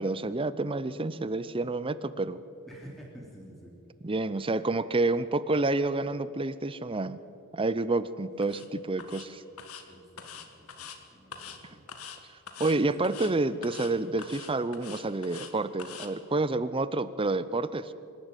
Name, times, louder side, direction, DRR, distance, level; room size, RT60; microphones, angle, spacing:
voice 1, 0.0-2.4 4.0-7.2 7.5-9.4 12.6-17.9, right 2 dB, 25° right, 15 dB, 0.6 m, -29 dB
voice 2, 2.7-3.7 9.9-11.9, equal, ahead, -4 dB, 3.1 m, -50 dB
sound 1, 8.4-8.7 9.0-9.3 9.6-9.8 10.2-11.0 11.3-11.6 11.9-12.2 12.5-12.8 13.0-13.3 13.6-13.9 14.2-15.5 15.8-16.1, left 7 dB, 70° left, 1.7 m, -43 dB
25.5 x 12.0 x 9.1 m, 2.6 s
head